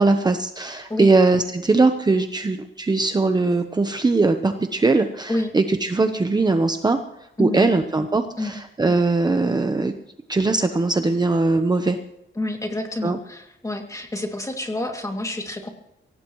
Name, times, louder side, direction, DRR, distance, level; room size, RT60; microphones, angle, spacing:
voice 1, 0.0-7.0 7.4-9.9 10.3-12.0 13.0-13.2, right 3 dB, 20° right, 6 dB, 0.9 m, -20 dB
voice 2, 7.4-7.7 8.4-8.5 12.4-15.7, left 1 dB, 15° left, 3 dB, 2.5 m, -28 dB
24.0 x 17.5 x 3.1 m, 0.85 s
wide cardioid pair, 140°, 20 cm